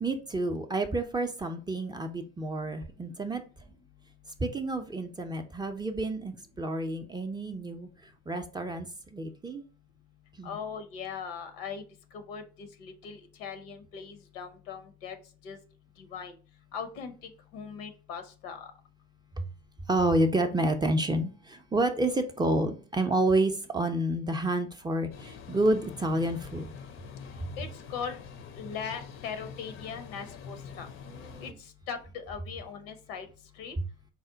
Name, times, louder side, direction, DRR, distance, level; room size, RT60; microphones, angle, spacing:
voice 1, 0.0-3.4 4.4-7.9 8.3-9.6 10.4-10.6 19.4-19.5 19.9-26.7 31.1-31.5, right 1 dB, 15° right, 0.5 m, -29 dB
voice 2, 10.4-11.8 12.1-15.2 15.4-15.6 16.0-16.4 16.7-18.7 27.6-28.2 28.5-30.9 31.4-33.3 33.6-33.8, left 6 dB, 75° left, 0.8 m, -40 dB
sound 1, 25.1-31.5, left 6 dB, 45° left, 0.6 m, -45 dB
4.1 x 2.1 x 3.7 m
hypercardioid pair, 80°, 30 cm